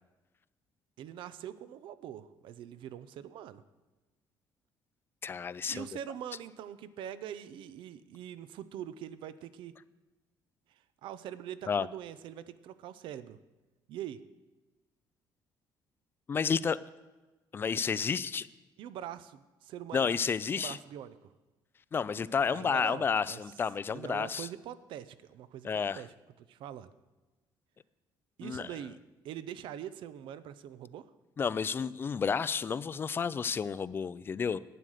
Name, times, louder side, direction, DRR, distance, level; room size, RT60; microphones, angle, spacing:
voice 1, 1.0-3.6 5.6-9.7 10.7-13.4 13.9-14.2 18.8-20.1 20.5-21.2 22.1-23.4 23.9-26.9 28.4-29.0 29.2-31.1, right 10 dB, 75° right, 15 dB, 0.6 m, -43 dB
voice 2, 5.2-5.9 11.7-11.9 16.3-16.8 17.5-18.5 19.9-20.8 21.9-24.5 25.6-26.0 28.4-28.7 31.4-34.6, left 6 dB, 25° left, 17 dB, 0.3 m, -31 dB
11.0 x 9.2 x 6.4 m, 1.2 s
cardioid pair, 150°, 9 cm